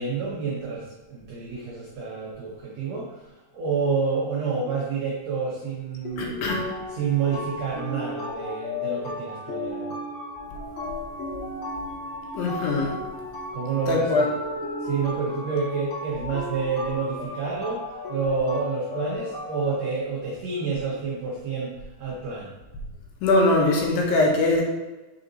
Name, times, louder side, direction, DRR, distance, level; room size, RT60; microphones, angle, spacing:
voice 1, 0.0-3.2 3.5-6.4 6.9-10.0 13.5-14.3 14.8-22.5, right 5 dB, 80° right, -4 dB, 1.5 m, -29 dB
sound 1, 6.0-19.8, left 2 dB, 50° left, 1.8 m, -34 dB
voice 2, 6.2-6.6 12.3-12.9 13.9-14.3 23.2-24.6, left 2 dB, 75° left, 0 dB, 2.7 m, -21 dB
6.2 x 4.0 x 3.8 m, 1.1 s
omnidirectional pair, 4.3 m